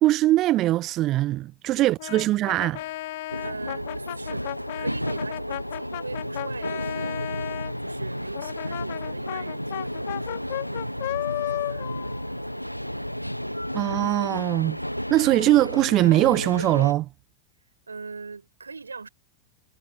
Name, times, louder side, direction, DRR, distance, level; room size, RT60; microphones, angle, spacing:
voice 1, 0.0-2.8 13.7-14.8 15.1-17.1, right 15 dB, 35° right, 1.1 m, -21 dB
Brass instrument, 2.0-7.7 8.3-13.1, left 17 dB, 55° left, 3.0 m, -34 dB
sound 1, 3.3-16.9, equal, 90° left, 0.9 m, -32 dB
voice 2, 3.4-12.0 17.9-19.1, right 4 dB, 75° right, 5.0 m, -41 dB
figure-of-eight pair, 90°, 0 cm